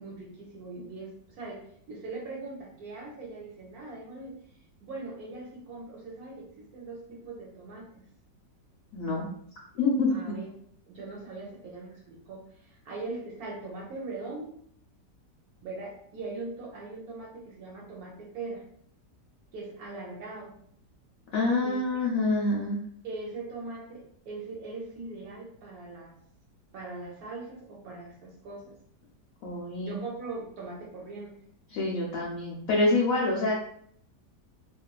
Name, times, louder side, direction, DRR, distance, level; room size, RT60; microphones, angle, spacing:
voice 1, 0.0-4.4 4.8-8.0 10.1-10.5 10.9-14.6 15.6-18.6 19.5-20.5 21.6-22.0 23.0-26.2 26.7-28.7 29.8-31.3 33.3-33.5, right 3 dB, 65° right, -2 dB, 1.0 m, -41 dB
voice 2, 8.9-9.3 9.8-10.1 21.3-22.8 29.4-30.0 31.7-33.5, left 2 dB, 65° left, -3 dB, 0.9 m, -26 dB
2.9 x 2.5 x 2.3 m, 0.64 s
omnidirectional pair, 1.9 m